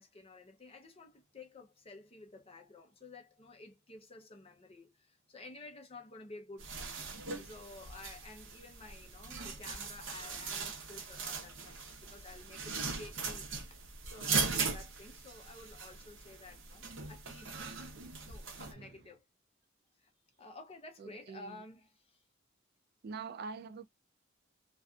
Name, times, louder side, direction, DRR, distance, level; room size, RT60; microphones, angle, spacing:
voice 1, 0.0-17.7 18.2-19.2 20.0-20.1 20.4-22.2, left 3 dB, 30° left, 0.6 m, -52 dB
sound 1, 6.6-18.7, right 4 dB, 70° right, 0.8 m, -39 dB
voice 2, 21.0-21.6 23.0-23.9, right 5 dB, 50° right, 0.3 m, -45 dB
2.4 x 2.4 x 2.2 m
head